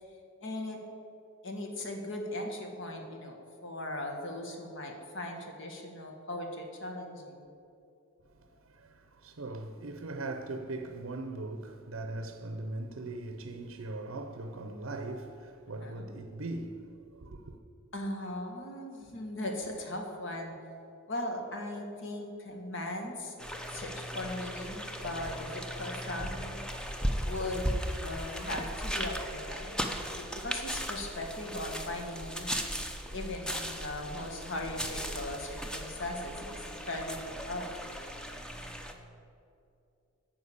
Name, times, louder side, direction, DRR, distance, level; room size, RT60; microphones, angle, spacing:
voice 1, 0.4-0.8 1.4-7.5 15.7-16.1 17.9-20.5 21.1-23.3 23.7-26.6 27.2-27.7 28.0-32.7 33.1-38.0, left 1 dB, 60° left, 1.5 m, -38 dB
voice 2, 8.2-17.6, right 2 dB, 70° right, 0.6 m, -40 dB
sound 1, 23.4-38.9, equal, 5° left, 0.6 m, -37 dB
9.4 x 5.8 x 8.4 m
head